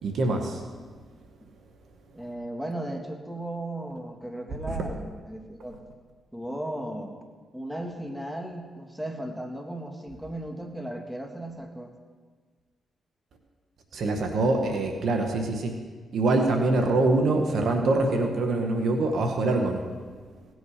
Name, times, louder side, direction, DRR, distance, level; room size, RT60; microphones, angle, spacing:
voice 1, 0.0-0.6 4.7-4.8 13.9-15.8 16.1-19.8, right 2 dB, 70° right, 4 dB, 1.6 m, -24 dB
voice 2, 2.1-6.0 6.3-7.2 7.5-11.9 14.3-14.7, right 1 dB, 5° right, 3 dB, 2.0 m, -36 dB
17.5 x 8.1 x 5.1 m, 1.5 s
supercardioid pair, 55°, 0 cm